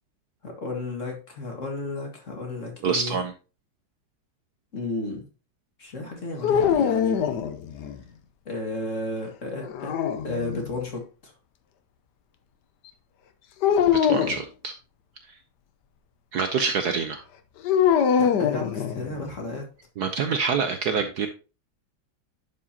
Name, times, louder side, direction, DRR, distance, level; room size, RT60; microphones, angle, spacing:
voice 1, 0.4-3.2 4.7-5.3 5.8-7.4 8.5-10.0 10.2-11.3 18.2-19.6, left 2 dB, 40° left, 1 dB, 2.1 m, -33 dB
voice 2, 2.8-3.3 14.0-14.7 16.3-17.2 20.0-21.3, right 5 dB, 65° right, 8 dB, 1.1 m, -26 dB
sound 1, 6.4-8.0 9.6-10.8 13.6-14.4 17.6-19.3, left 8 dB, 65° left, 1.2 m, -23 dB
11.0 x 5.0 x 2.8 m, 0.32 s
omnidirectional pair, 2.2 m